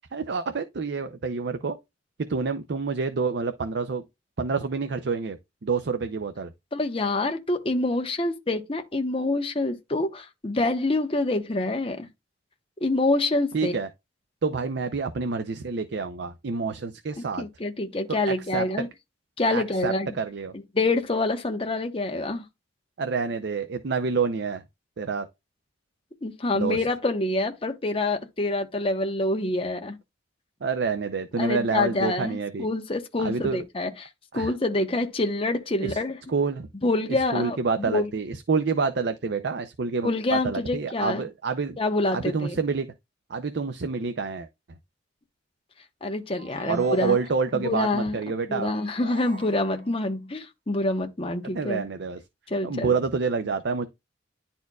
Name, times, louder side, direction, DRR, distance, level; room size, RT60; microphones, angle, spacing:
voice 1, 0.1-1.8 2.3-4.0 4.4-5.4 5.6-6.5 13.5-13.9 14.4-17.4 18.1-18.2 18.5-18.6 19.5-20.5 23.0-24.6 25.0-25.3 26.5-26.8 30.6-32.7 33.2-33.6 34.3-34.5 35.8-36.0 36.3-36.7 37.1-41.8 42.1-42.9 43.3-44.5 46.7-48.7 51.5-52.2 52.6-53.9, right 4 dB, 65° right, 0.5 m, -28 dB
voice 2, 6.7-12.1 12.8-13.8 17.2-18.9 19.4-20.2 20.7-22.4 26.2-30.0 31.4-36.2 36.8-38.1 40.0-41.2 41.8-42.6 46.0-47.2 47.5-48.2 48.5-51.8 52.5-52.9, left 2 dB, 30° left, 0.9 m, -26 dB
sound 1, 46.3-47.7 48.7-50.1, right 2 dB, 50° right, 1.4 m, -44 dB
10.5 x 4.3 x 2.3 m
head